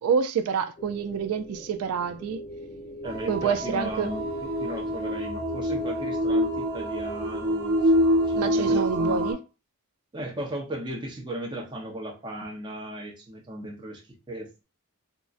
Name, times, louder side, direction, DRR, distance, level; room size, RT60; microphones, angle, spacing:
voice 1, 0.0-2.4 3.3-4.1 8.4-9.4, right 6 dB, 85° right, 0.3 m, -27 dB
sound 1, 0.8-8.9, equal, 30° left, 0.6 m, -41 dB
voice 2, 3.0-7.9 8.3-9.3 10.1-14.6, right 1 dB, 20° right, 0.7 m, -36 dB
sound 2, 3.0-9.3, equal, 50° right, 1.0 m, -26 dB
3.7 x 2.1 x 2.4 m
head